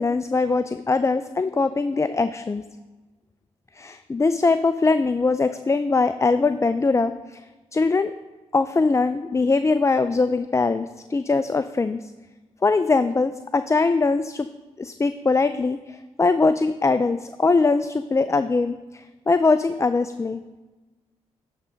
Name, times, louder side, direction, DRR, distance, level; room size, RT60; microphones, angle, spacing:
voice 1, 0.0-2.6 3.8-7.4 7.7-8.1 8.5-12.1 12.6-14.5 14.8-20.6, left 3 dB, 20° left, 11 dB, 0.4 m, -22 dB
11.0 x 3.8 x 5.7 m, 1.2 s
supercardioid pair, 50°, 13 cm